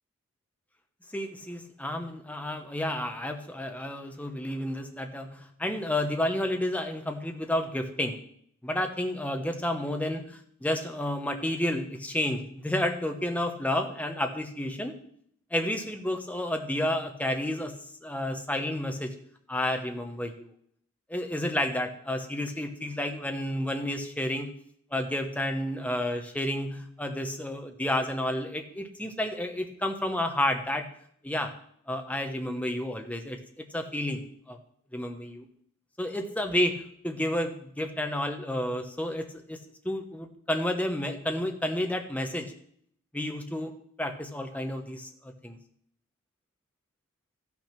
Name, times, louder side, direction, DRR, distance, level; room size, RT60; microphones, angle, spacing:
voice 1, 1.1-8.2 8.6-14.9 15.5-17.7 18.0-19.1 19.5-20.5 21.1-24.5 24.9-30.9 31.2-31.5 31.9-34.6 34.9-35.4 36.0-39.6 39.8-42.5 43.1-43.7 44.0-45.6, left 1 dB, 5° left, 5 dB, 1.0 m, -31 dB
14.0 x 6.1 x 5.9 m, 0.66 s
head